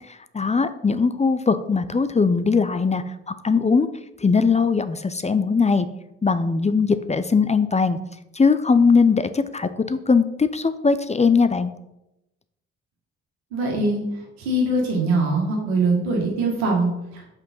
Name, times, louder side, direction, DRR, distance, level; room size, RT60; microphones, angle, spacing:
voice 1, 0.3-3.9 4.2-5.9 6.2-8.0 8.4-11.7, left 5 dB, 20° left, 12 dB, 0.6 m, -20 dB
voice 2, 13.5-14.0 14.4-17.3, right 2 dB, 90° right, -1 dB, 1.9 m, -22 dB
6.1 x 5.3 x 5.5 m, 0.89 s
hypercardioid pair, 45°, 31 cm